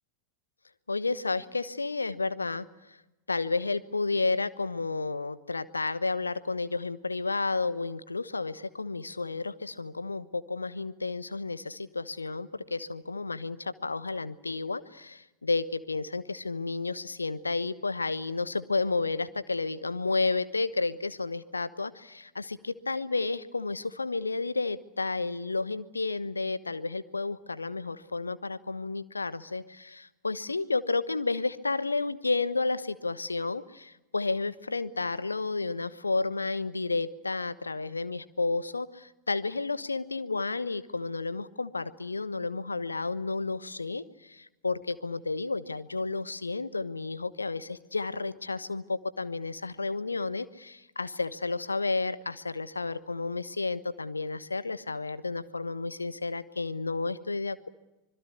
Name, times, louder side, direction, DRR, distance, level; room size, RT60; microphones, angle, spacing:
voice 1, 0.9-3.0 3.3-57.7, left 3 dB, 80° left, 15 dB, 1.1 m, -31 dB
25.5 x 21.5 x 8.3 m, 1.0 s
figure-of-eight pair, 90°, 0 cm